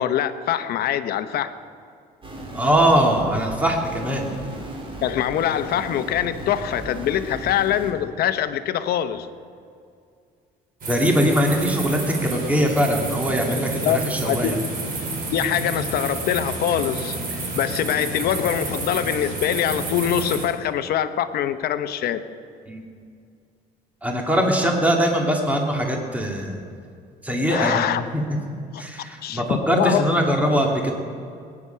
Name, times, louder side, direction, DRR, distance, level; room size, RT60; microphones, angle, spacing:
voice 1, 0.0-1.5 5.0-9.3 13.6-14.6 15.3-22.2 27.5-28.0 28.7-28.8 29.2-30.0, left 10 dB, 65° left, 11 dB, 0.8 m, -24 dB
sound 1, 2.2-7.9, right 1 dB, 30° right, 2.9 m, -36 dB
voice 2, 2.5-4.3 10.9-14.6 22.7-22.8 24.0-26.6 27.2-27.8 28.1-28.2 28.8-30.9, equal, 10° right, 1 dB, 2.2 m, -21 dB
sound 2, 10.8-20.5, right 3 dB, 55° right, 4.0 m, -30 dB
22.0 x 9.8 x 5.7 m, 2.3 s
cardioid pair, 110°, 17 cm